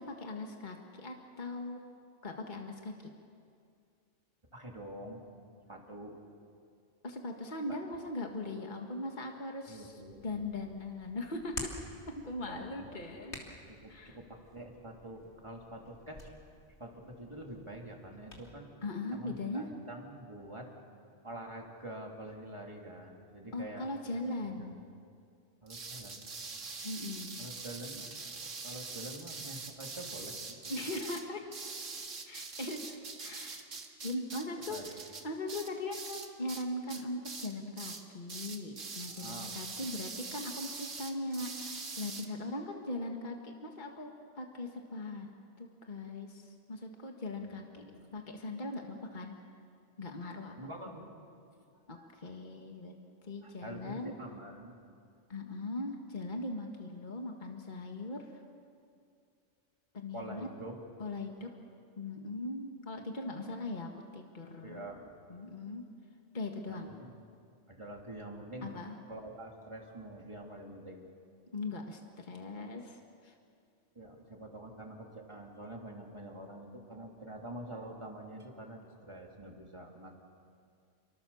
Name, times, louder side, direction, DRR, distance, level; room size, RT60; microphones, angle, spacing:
voice 1, 0.0-1.8 2.2-2.9 7.0-9.9 10.2-11.7 12.1-13.3 13.9-14.2 18.8-19.7 23.5-24.8 26.8-27.4 30.7-31.4 32.3-45.3 45.6-49.3 50.0-50.6 51.9-52.9 53.2-54.1 55.3-58.4 59.9-60.5 61.0-61.5 62.0-64.9 65.3-65.9 66.3-66.9 68.6-68.9 71.5-73.4, left 2 dB, 40° left, 2 dB, 2.0 m, -40 dB
voice 2, 4.5-5.2 5.7-6.2 9.7-10.4 12.5-13.4 13.7-16.3 16.8-18.7 19.1-20.7 21.2-23.9 24.6-24.7 25.6-26.3 27.4-30.6 34.7-35.1 39.1-39.5 47.4-48.1 50.6-51.1 51.9-52.1 53.4-54.8 60.1-60.8 64.6-65.1 66.7-67.1 67.7-68.7 69.1-71.1 73.9-80.2, right 1 dB, 25° right, 0 dB, 3.3 m, -46 dB
Hands, 10.1-18.5, left 1 dB, 65° left, 3.6 m, -50 dB
sound 1, 25.7-36.6 36.9-37.5 37.8-38.0 38.3-42.3, right 4 dB, 90° right, 2.2 m, -43 dB
29.0 x 25.0 x 7.2 m, 2.4 s
omnidirectional pair, 1.3 m